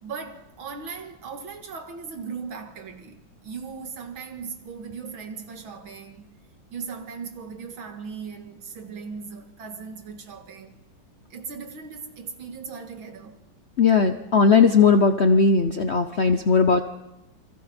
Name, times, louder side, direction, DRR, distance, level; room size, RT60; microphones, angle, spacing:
voice 1, 0.0-6.3 6.7-10.8 11.3-13.4 16.4-16.5, right 5 dB, 75° right, 2.6 m, -38 dB
voice 2, 13.8-16.8, left 5 dB, 55° left, 0.7 m, -18 dB
28.0 x 23.0 x 4.4 m
omnidirectional pair, 2.2 m